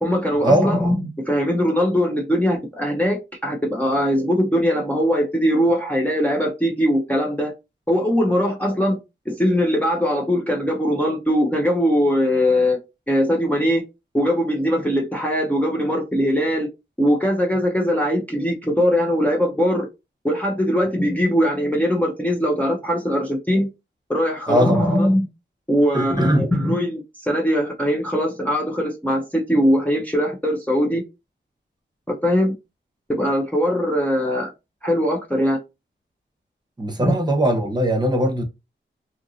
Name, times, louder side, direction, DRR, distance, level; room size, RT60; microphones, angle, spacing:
voice 1, 0.0-7.5 7.9-9.0 9.3-12.8 13.1-13.8 14.1-16.7 17.0-19.9 20.2-23.7 24.1-25.3 25.7-31.0 32.1-32.5 33.1-34.5 34.8-35.6 37.0-37.1, equal, 10° left, 0.6 m, -21 dB
voice 2, 24.5-24.8 25.9-26.4 36.8-38.4, right 1 dB, 20° right, 0.9 m, -20 dB
2.8 x 2.6 x 2.6 m
wide cardioid pair, 90°, 20 cm